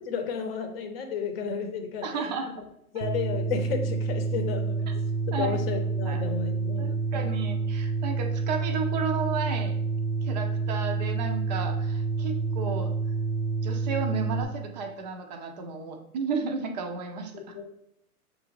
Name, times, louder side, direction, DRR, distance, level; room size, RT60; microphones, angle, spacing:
voice 1, 0.0-2.2 2.9-4.8 5.3-7.3 17.3-17.7, left 6 dB, 40° left, 5 dB, 0.8 m, -33 dB
voice 2, 2.0-2.5 4.9-5.0 5.3-5.6 6.1-6.2 6.8-9.8 10.2-13.0 13.6-17.6, right 5 dB, 30° right, 5 dB, 0.5 m, -33 dB
sound 1, 3.0-14.4, right 4 dB, 80° right, 0.7 m, -28 dB
6.6 x 2.5 x 3.0 m, 0.78 s
hypercardioid pair, 130°, 45 cm